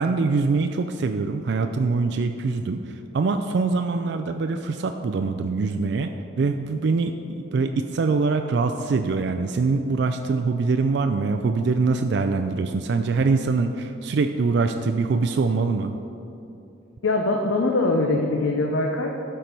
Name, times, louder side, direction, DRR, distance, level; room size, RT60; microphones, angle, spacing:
voice 1, 0.0-2.8 3.1-6.1 6.4-15.9, right 4 dB, 55° right, 6 dB, 0.3 m, -23 dB
voice 2, 17.0-19.1, left 2 dB, 75° left, 1 dB, 0.7 m, -22 dB
12.0 x 4.5 x 5.2 m, 2.9 s
head